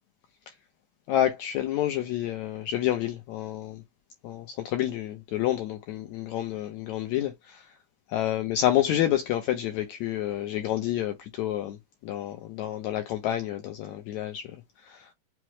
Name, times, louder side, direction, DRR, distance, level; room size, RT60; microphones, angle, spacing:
voice 1, 1.1-3.8 4.2-7.7 8.1-11.8 12.0-14.5 14.8-15.1, left 12 dB, 80° left, 1.6 m, -29 dB
5.8 x 2.0 x 3.0 m
omnidirectional pair, 3.9 m